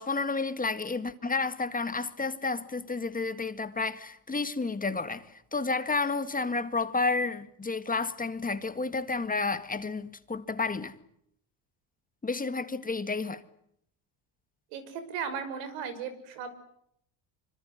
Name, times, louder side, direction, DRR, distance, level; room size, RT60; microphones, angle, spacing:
voice 1, 0.0-11.0 12.2-13.4, left 3 dB, 20° left, 1.9 m, -31 dB
voice 2, 14.7-16.5, right 6 dB, 85° right, 6.1 m, -36 dB
26.0 x 25.5 x 8.0 m
cardioid pair, 110°, 45 cm